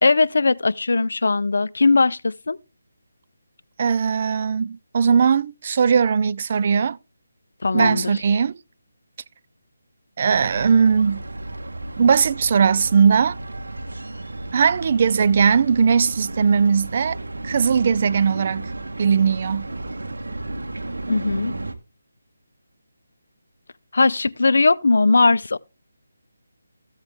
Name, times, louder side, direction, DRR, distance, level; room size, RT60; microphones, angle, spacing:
voice 1, 0.0-2.6 7.6-8.1 21.1-21.6 23.9-25.6, left 3 dB, 70° left, 0.6 m, -19 dB
voice 2, 3.8-7.0 7.7-8.6 10.2-11.2 12.0-13.4 14.5-17.2 17.4-18.7 19.0-19.7, right 6 dB, 40° right, 0.5 m, -19 dB
sound 1, 10.3-21.7, right 2 dB, 90° right, 1.6 m, -33 dB
14.0 x 8.0 x 3.6 m
figure-of-eight pair, 165°, 0 cm